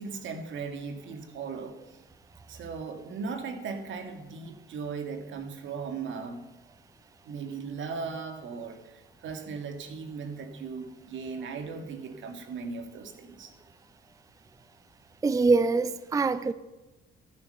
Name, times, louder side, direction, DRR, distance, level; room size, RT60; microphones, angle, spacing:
voice 1, 0.0-1.8 2.5-6.4 7.2-13.5, right 5 dB, 75° right, 6 dB, 2.0 m, -37 dB
voice 2, 15.2-16.5, right 3 dB, 15° right, 15 dB, 0.4 m, -24 dB
14.0 x 8.5 x 6.6 m, 1.1 s
cardioid pair, 90°, 20 cm